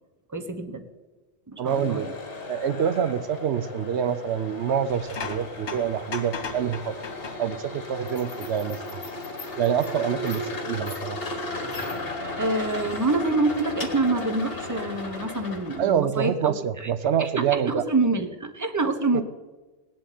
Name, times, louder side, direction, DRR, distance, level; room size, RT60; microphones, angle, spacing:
voice 1, 0.3-0.8 1.5-2.1 12.4-16.9 17.2-19.2, right 2 dB, 15° right, 7 dB, 1.0 m, -26 dB
voice 2, 1.6-2.1 2.5-6.9 7.4-9.0 9.6-11.2 15.8-17.8 19.1-19.2, right 8 dB, 75° right, 13 dB, 0.9 m, -26 dB
sound 1, 1.7-16.0, left 2 dB, 60° left, 2.1 m, -35 dB
sound 2, 4.9-7.8 8.2-8.5 10.1-10.2 11.7-12.0, left 5 dB, 80° left, 1.5 m, -38 dB
18.5 x 7.5 x 9.2 m, 1.3 s
omnidirectional pair, 1.1 m